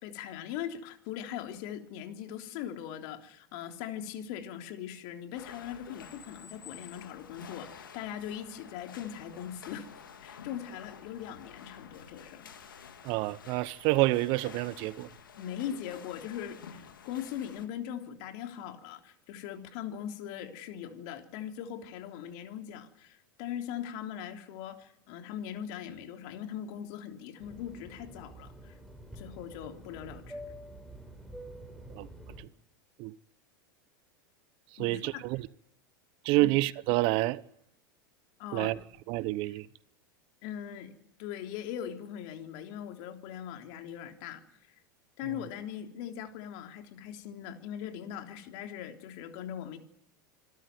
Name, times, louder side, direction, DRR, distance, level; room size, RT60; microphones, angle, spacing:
voice 1, 0.0-9.9 10.2-12.5 15.4-28.8 29.1-30.4 34.8-35.3 36.4-36.5 38.4-38.7 40.4-40.9 41.2-44.4 45.2-49.8, left 10 dB, 60° left, 3.5 m, -40 dB
sound 1, 5.4-17.7, left 7 dB, 85° left, 2.8 m, -50 dB
voice 2, 13.0-15.1 31.9-32.1 32.4-32.5 33.0-33.2 34.7-35.5 36.2-37.4 38.5-38.8 39.1-39.7, right 19 dB, 55° right, 0.9 m, -28 dB
Fixed-wing aircraft airplane, 27.4-32.4, right 1 dB, ahead, 4.7 m, -47 dB
26.5 x 13.0 x 9.3 m
hypercardioid pair, 95°, 11 cm